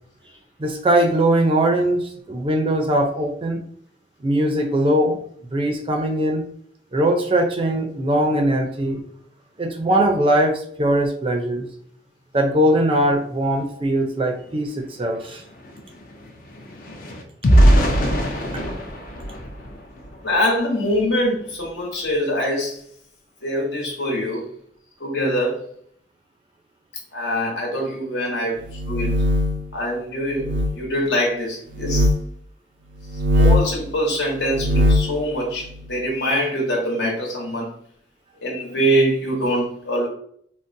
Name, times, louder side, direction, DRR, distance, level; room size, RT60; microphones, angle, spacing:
voice 1, 0.6-3.6 4.2-5.2 5.5-6.4 6.9-9.0 9.6-11.7 12.3-15.4 18.5-18.6, right 1 dB, 30° right, 3 dB, 0.4 m, -20 dB
sound 1, 14.5-14.6 14.9-20.3 20.9-21.1 21.4-21.7, equal, 55° left, 0.5 m, -21 dB
voice 2, 20.2-22.8 23.4-24.5 25.0-25.6 27.1-29.2 29.7-30.5 30.7-32.1 33.3-37.8 38.4-40.1, equal, 75° left, -1 dB, 1.1 m, -23 dB
sound 2, 28.7-29.7 30.4-30.7 31.7-32.2 33.1-33.8 34.4-35.1, left 1 dB, 90° right, 0.5 m, -19 dB
3.8 x 2.0 x 2.6 m, 0.63 s
head